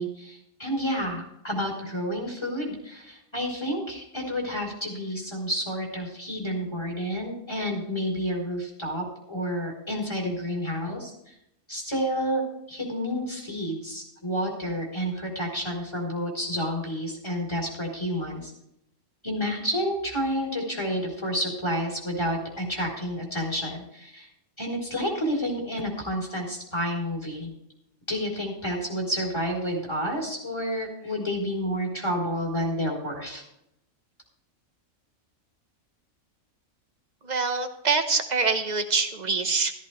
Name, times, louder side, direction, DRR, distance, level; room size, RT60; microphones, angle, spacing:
voice 1, 0.0-11.3 11.7-18.5 19.2-24.3 24.6-27.5 28.1-33.4, equal, 20° left, -2 dB, 3.9 m, -30 dB
voice 2, 37.2-39.7, right 4 dB, 35° right, 6 dB, 1.2 m, -25 dB
14.0 x 14.0 x 3.3 m, 0.80 s
omnidirectional pair, 1.4 m